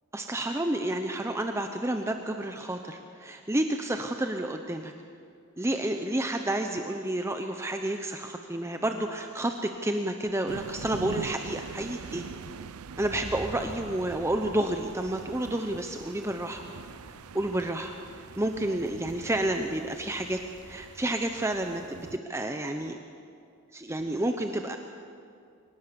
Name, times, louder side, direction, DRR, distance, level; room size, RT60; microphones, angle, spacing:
voice 1, 0.1-4.9 5.6-12.3 13.0-16.6 17.3-17.9 18.4-20.4 20.7-23.0 23.7-24.8, right 1 dB, 10° right, 5 dB, 0.8 m, -30 dB
Motor vehicle (road), 5.8-6.1 6.4-20.9 21.2-21.7, equal, 55° left, 3.8 m, -51 dB
sound 1, 10.5-22.2, right 5 dB, 90° right, 0.5 m, -43 dB
24.5 x 19.0 x 6.9 m, 2.4 s
head